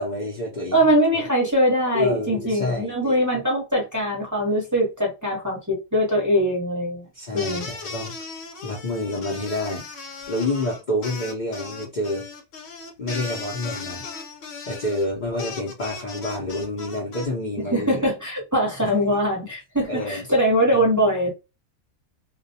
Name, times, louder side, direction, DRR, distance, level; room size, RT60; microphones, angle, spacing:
voice 1, 0.0-0.8 1.1-1.2 1.9-3.2 7.1-8.1 8.6-9.9 10.3-12.3 13.0-14.1 14.7-18.1 18.8-18.9 19.9-20.2 20.7-20.8, left 1 dB, 45° left, 0.6 m, -28 dB
voice 2, 0.7-7.1 7.3-7.7 17.7-21.3, equal, 15° right, 0.8 m, -22 dB
sound 1, 7.3-17.3, left 4 dB, 65° left, 1.0 m, -37 dB
2.4 x 2.1 x 2.6 m
omnidirectional pair, 1.4 m